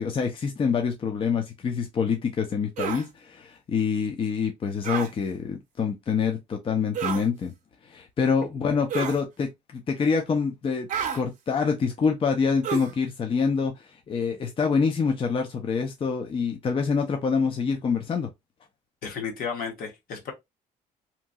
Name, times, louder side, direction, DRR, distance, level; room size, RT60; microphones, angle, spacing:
voice 1, 0.0-7.5 7.8-10.9 11.1-18.3, left 5 dB, 35° left, 0.5 m, -26 dB
sound 1, 2.8-3.0 4.8-5.1 6.9-7.3 8.9-9.2 10.9-11.2 12.6-13.0, right 8 dB, 55° right, 0.7 m, -30 dB
voice 2, 19.0-20.3, left 6 dB, 65° left, 1.1 m, -33 dB
2.9 x 2.6 x 2.2 m
cardioid pair, 95°, 16 cm